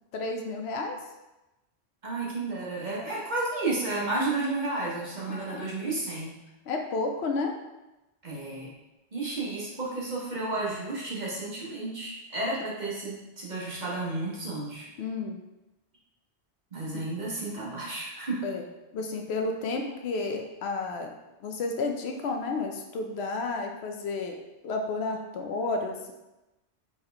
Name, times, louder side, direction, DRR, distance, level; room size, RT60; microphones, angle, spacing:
voice 1, 0.1-1.0 5.3-5.7 6.7-7.5 15.0-15.4 16.9-17.0 18.4-18.6 18.9-21.1 21.4-24.4 24.6-26.1, left 3 dB, 70° left, 3 dB, 0.8 m, -31 dB
voice 2, 2.0-6.3 8.2-8.7 9.1-14.9 16.7-18.4, right 2 dB, 45° right, -5 dB, 1.1 m, -32 dB
4.2 x 3.6 x 3.3 m, 1.0 s
omnidirectional pair, 1.1 m